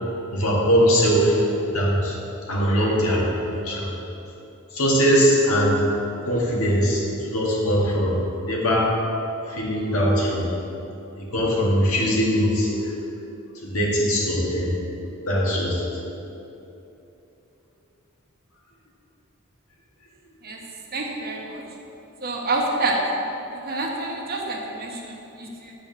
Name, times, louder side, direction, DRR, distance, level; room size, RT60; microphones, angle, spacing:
voice 1, 0.3-2.1 2.5-3.2 3.5-3.9 4.7-5.8 6.3-8.1 8.4-8.9 9.5-10.5 11.2-12.9 13.6-14.7 15.3-15.8, equal, 85° left, -4 dB, 2.0 m, -21 dB
voice 2, 20.9-21.6 22.2-23.0 23.7-25.7, right 2 dB, 45° right, 0 dB, 1.2 m, -28 dB
9.1 x 5.1 x 6.7 m, 2.9 s
head